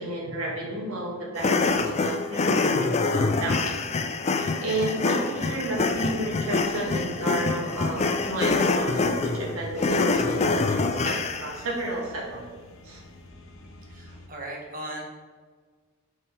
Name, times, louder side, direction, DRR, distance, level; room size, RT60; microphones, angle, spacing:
voice 1, 0.0-3.7 4.4-12.4 12.8-13.0, right 1 dB, 75° right, -2 dB, 1.8 m, -32 dB
sound 1, 1.4-11.6, left 3 dB, 30° left, 0.4 m, -25 dB
sound 2, 5.4-14.3, left 1 dB, 65° left, 0.9 m, -49 dB
voice 2, 13.9-15.0, right 1 dB, 40° right, -1 dB, 1.3 m, -37 dB
8.5 x 4.7 x 3.4 m, 1.5 s
head